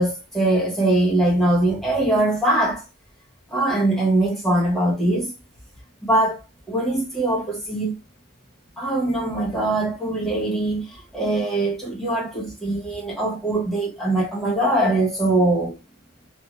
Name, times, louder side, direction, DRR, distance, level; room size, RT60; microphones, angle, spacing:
voice 1, 0.0-2.8 3.5-5.3 6.0-6.4 6.7-7.9 8.8-15.8, right 1 dB, ahead, 0.8 m, -22 dB
2.6 x 2.4 x 2.8 m
head